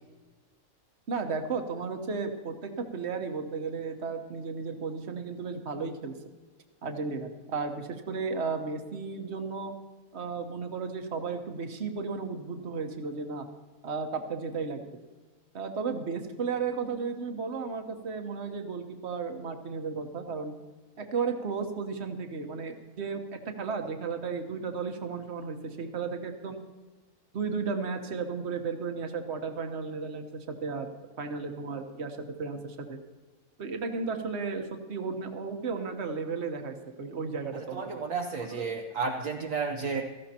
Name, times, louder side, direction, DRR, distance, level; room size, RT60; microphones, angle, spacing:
voice 1, 1.1-6.2 6.8-9.7 10.1-13.5 13.8-14.9 15.5-20.5 21.0-26.6 27.3-30.9 31.2-33.0 33.6-38.0 38.4-38.6, right 5 dB, 50° right, 5 dB, 1.4 m, -34 dB
voice 2, 37.7-40.0, right 4 dB, 65° right, 2 dB, 1.2 m, -32 dB
17.5 x 14.5 x 2.9 m, 1.3 s
omnidirectional pair, 1.6 m